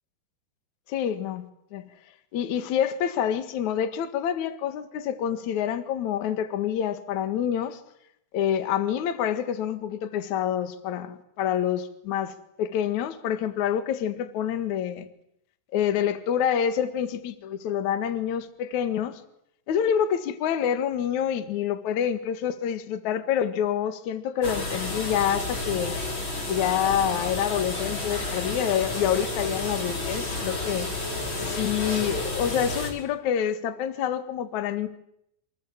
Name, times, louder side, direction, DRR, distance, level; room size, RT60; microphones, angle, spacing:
voice 1, 0.9-1.5 1.7-1.8 2.3-7.8 8.3-15.1 15.7-19.2 19.7-26.0 26.5-30.9 31.4-34.9, left 9 dB, 55° left, 2.3 m, -27 dB
sound 1, 24.4-32.9, left 2 dB, 25° left, 5.5 m, -31 dB
28.0 x 27.0 x 7.4 m
omnidirectional pair, 5.6 m